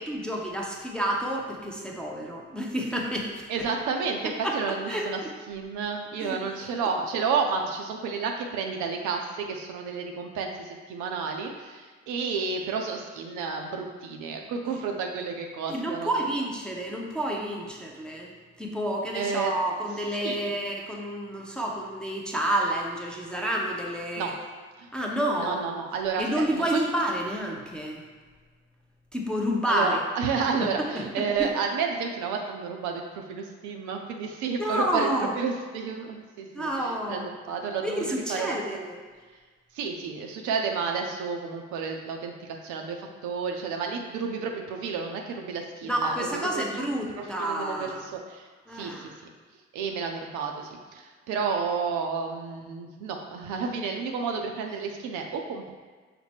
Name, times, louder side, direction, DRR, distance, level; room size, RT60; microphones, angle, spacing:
voice 1, 0.0-3.7 4.4-4.6 4.9-5.1 6.2-6.4 15.7-24.4 24.9-25.6 26.2-28.1 29.1-30.0 30.6-30.7 30.9-31.5 34.6-35.4 36.5-37.3 37.8-39.0 45.8-48.0 48.7-49.2, right 1 dB, ahead, -1 dB, 0.6 m, -29 dB
voice 2, 3.5-5.2 5.5-16.1 19.1-19.5 20.2-20.5 24.1-24.3 24.8-24.9 25.4-26.8 29.7-35.1 35.4-38.0 38.3-38.6 39.7-46.8 47.1-48.5 48.7-49.1 49.7-55.7, right 5 dB, 55° right, 2 dB, 0.5 m, -31 dB
5.7 x 2.1 x 3.5 m, 1.5 s
figure-of-eight pair, 45°, 36 cm